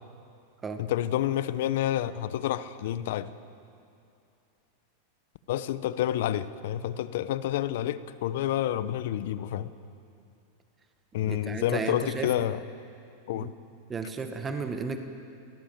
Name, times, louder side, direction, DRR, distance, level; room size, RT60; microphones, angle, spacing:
voice 1, 0.8-3.3 5.5-9.7 11.1-12.6 13.3-13.5, left 12 dB, 65° left, 15 dB, 0.8 m, -29 dB
voice 2, 11.3-12.3 13.3-13.5 13.9-15.0, right 4 dB, 20° right, 6 dB, 1.6 m, -33 dB
23.0 x 17.0 x 7.5 m, 2.6 s
hypercardioid pair, 105°, 0 cm